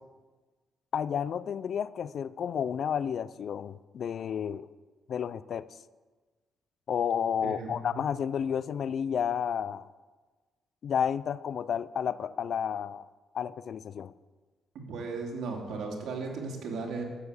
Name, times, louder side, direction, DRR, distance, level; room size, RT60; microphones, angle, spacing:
voice 1, 0.9-4.7 5.1-5.7 6.9-9.9 10.8-13.0 13.3-14.1, left 8 dB, 60° left, 0.4 m, -31 dB
voice 2, 7.4-8.0 14.7-17.0, right 4 dB, 75° right, 2.9 m, -36 dB
12.5 x 7.6 x 8.1 m
cardioid pair, 90°, 0 cm